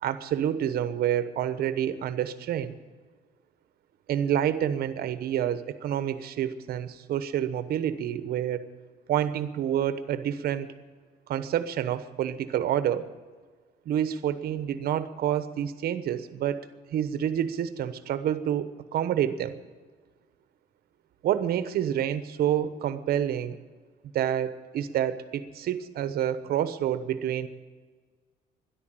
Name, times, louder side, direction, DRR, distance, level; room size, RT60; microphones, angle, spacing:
voice 1, 0.0-2.7 4.1-8.6 9.1-10.7 11.3-13.1 13.8-19.5 21.2-23.6 24.1-27.5, right 10 dB, 65° right, 12 dB, 1.1 m, -28 dB
13.0 x 11.0 x 8.9 m, 1.4 s
cardioid pair, 110°, 17 cm